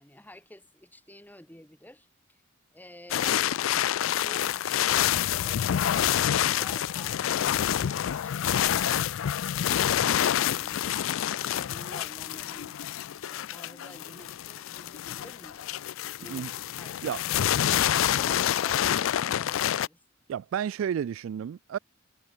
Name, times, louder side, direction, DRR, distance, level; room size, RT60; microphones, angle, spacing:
voice 1, 0.0-2.4 2.7-3.6 10.4-11.0 11.5-12.8 13.3-15.9 16.2-17.2 17.8-20.0, left 1 dB, 10° left, 2.9 m, -50 dB
sound 1, 3.1-19.9, left 10 dB, 80° left, 0.4 m, -27 dB
voice 2, 20.3-21.8, right 8 dB, 80° right, 0.3 m, -31 dB
head